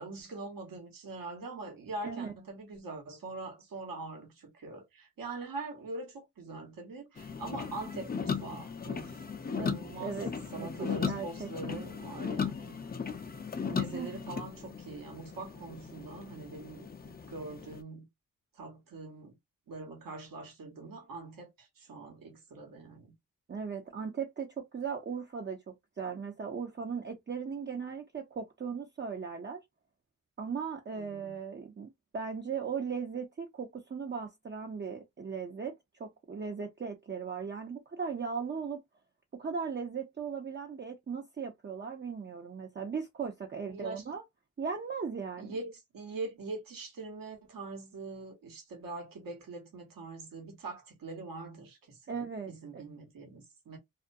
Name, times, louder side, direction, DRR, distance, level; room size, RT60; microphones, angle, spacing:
voice 1, 0.0-10.2 10.5-12.8 13.7-18.1 18.5-19.4 19.7-23.1 30.9-31.4 43.7-44.1 45.4-52.2 52.5-53.8, right 3 dB, 75° right, 1.1 m, -43 dB
sound 1, 7.2-17.8, left 6 dB, 30° left, 0.5 m, -37 dB
voice 2, 9.6-11.8 13.9-14.1 23.5-29.6 30.4-35.7 36.0-38.8 39.3-44.2 44.6-45.6 52.1-52.8, right 6 dB, 30° right, 0.6 m, -38 dB
2.4 x 2.1 x 2.5 m
cardioid pair, 50°, 34 cm